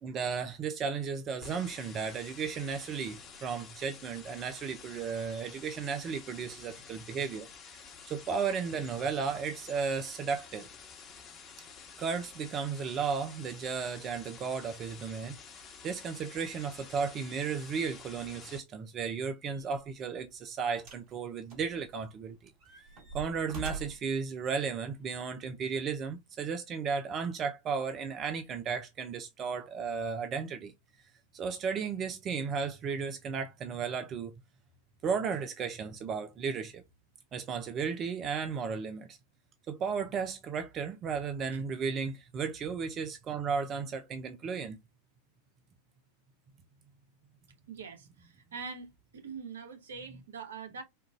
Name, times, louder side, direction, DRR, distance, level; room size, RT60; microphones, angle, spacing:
voice 1, 0.0-7.5 7.7-7.8 8.1-10.7 12.0-15.3 15.8-22.5 23.1-30.7 31.3-34.3 35.0-36.8 37.3-39.2 39.7-44.8, right 6 dB, 35° right, 0.6 m, -34 dB
sound 1, 1.4-18.6, left 6 dB, 35° left, 1.3 m, -50 dB
sound 2, 19.6-19.8 20.8-21.1 21.5-22.2 22.6-24.1 25.0-25.1, right 3 dB, 50° right, 2.2 m, -44 dB
voice 2, 47.7-48.9 49.1-50.8, right 5 dB, 75° right, 1.1 m, -43 dB
4.5 x 2.5 x 2.4 m
hypercardioid pair, 95°, 0 cm